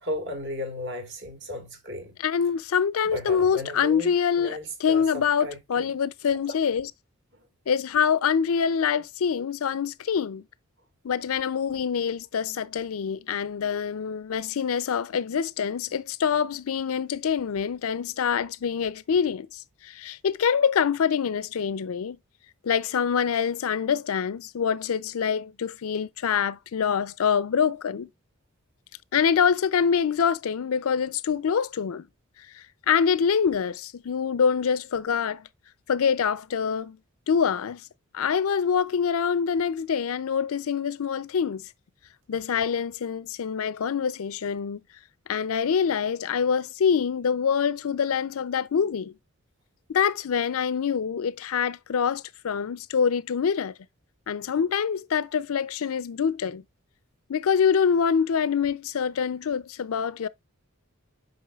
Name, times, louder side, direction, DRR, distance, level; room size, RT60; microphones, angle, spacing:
voice 1, 0.0-2.2 3.1-5.9, left 1 dB, 55° right, 1.9 m, -35 dB
voice 2, 2.2-6.9 7.7-10.4 11.0-22.2 22.6-28.1 29.1-32.1 32.5-35.5 35.9-37.0 37.3-37.8 38.1-41.6 42.3-44.8 45.3-49.1 49.9-53.7 54.3-56.6 57.3-60.3, left 7 dB, 75° left, 0.4 m, -25 dB
8.6 x 5.5 x 2.3 m
head